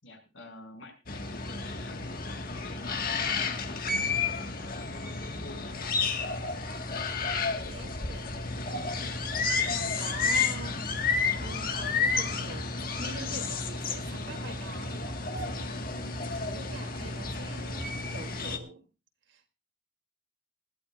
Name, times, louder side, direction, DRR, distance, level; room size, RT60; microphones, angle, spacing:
voice 1, 0.0-2.0 2.6-4.2 5.0-6.1, left 2 dB, 85° left, 6.3 m, -49 dB
sound 1, 1.1-18.6, left 4 dB, 50° left, 1.6 m, -31 dB
voice 2, 6.8-7.1 7.5-10.8 11.4-12.7 13.0-18.9 19.3-19.5, right 2 dB, 80° right, 2.8 m, -45 dB
19.5 x 14.5 x 2.5 m
head